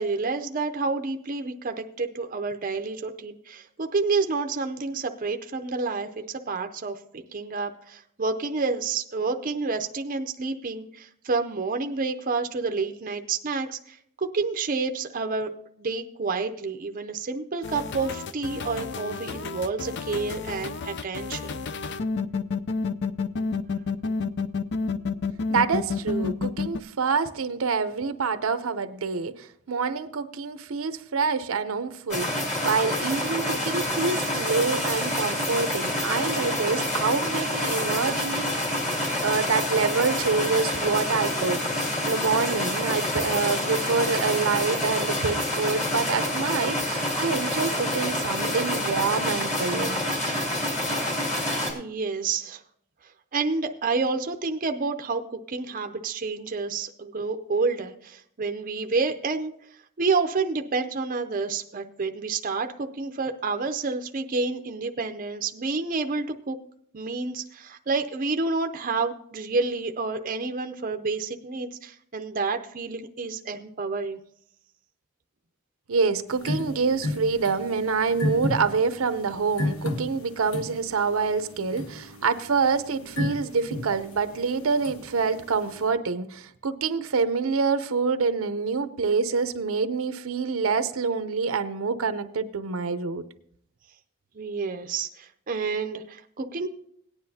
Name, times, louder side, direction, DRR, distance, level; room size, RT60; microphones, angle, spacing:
voice 1, 0.0-15.5 15.8-21.6 51.7-52.6 53.3-59.5 60.0-66.6 66.9-74.2 94.3-96.7, right 4 dB, 40° right, 5 dB, 0.6 m, -29 dB
sound 1, 17.6-26.8, left 4 dB, 55° left, 0.5 m, -30 dB
voice 2, 25.5-38.5 39.2-50.0 75.9-93.2, right 4 dB, 80° right, 11 dB, 0.7 m, -26 dB
sound 2, 32.1-51.7, left 1 dB, 35° left, 2.4 m, -27 dB
sound 3, 76.3-85.9, left 1 dB, 75° left, 1.2 m, -34 dB
17.5 x 9.7 x 2.8 m, 0.68 s
head